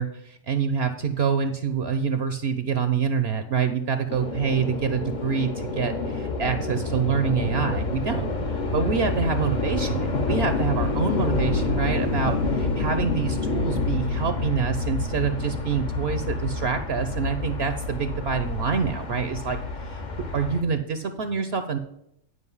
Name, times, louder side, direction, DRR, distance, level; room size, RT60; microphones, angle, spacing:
voice 1, 0.0-8.3 8.5-21.8, right 6 dB, 60° right, 9 dB, 0.9 m, -26 dB
sound 1, 4.1-20.6, left 3 dB, 40° left, 0.9 m, -28 dB
9.7 x 5.2 x 5.4 m, 0.77 s
omnidirectional pair, 1.3 m